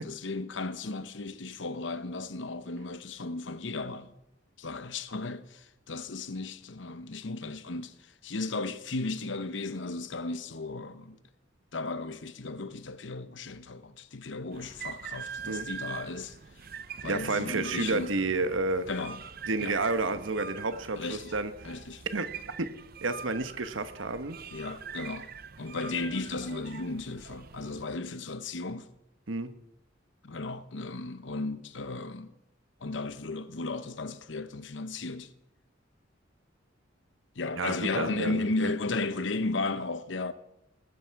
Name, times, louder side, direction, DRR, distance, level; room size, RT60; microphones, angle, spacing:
voice 1, 0.0-4.1 4.6-11.2 11.7-16.4 17.0-18.1 18.9-19.2 19.6-19.8 21.0-21.3 21.6-22.0 24.5-25.3 25.6-28.9 30.2-32.3 32.8-35.3 37.3-40.3, left 3 dB, 65° left, 0.9 m, -35 dB
sound 1, 14.5-27.9, right 6 dB, 50° right, 0.7 m, -43 dB
voice 2, 17.0-18.9 19.5-21.5 22.1-22.3 22.6-22.7 23.0-24.4 29.3-29.5 37.6-38.7, right 3 dB, 80° right, 1.1 m, -30 dB
20.0 x 12.0 x 4.7 m
head